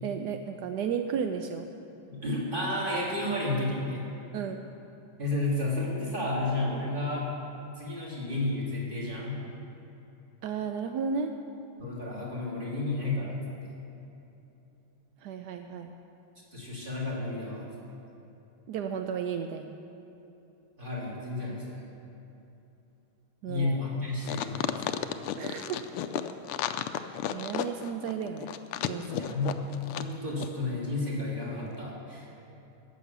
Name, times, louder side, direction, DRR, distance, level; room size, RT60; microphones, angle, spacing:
voice 1, 0.0-1.7 4.3-4.7 10.4-11.3 15.2-15.9 18.7-19.7 23.4-23.8 25.3-25.8 27.3-28.5 28.8-29.2, right 6 dB, 75° right, 6 dB, 0.9 m, -33 dB
voice 2, 2.1-4.1 5.2-7.3 7.6-9.4 11.8-13.4 13.6-13.7 16.5-17.6 20.8-21.8 23.4-25.0 29.1-29.6 29.9-32.4, left 2 dB, 25° right, -6 dB, 3.1 m, -32 dB
sound 1, 24.2-30.1 30.4-30.5, left 11 dB, 85° left, 1.5 m, -33 dB
14.0 x 9.5 x 6.8 m, 2.9 s
omnidirectional pair, 2.4 m